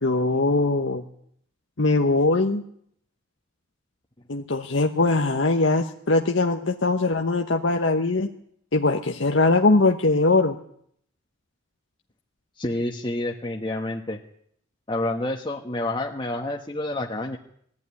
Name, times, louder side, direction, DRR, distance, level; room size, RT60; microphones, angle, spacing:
voice 1, 0.0-1.0 1.8-2.6 4.3-8.3 8.7-10.6, left 3 dB, 70° left, 3 dB, 1.1 m, -21 dB
voice 2, 12.6-14.2 14.9-17.4, left 1 dB, 25° left, -1 dB, 1.2 m, -28 dB
21.0 x 14.5 x 9.6 m, 0.68 s
head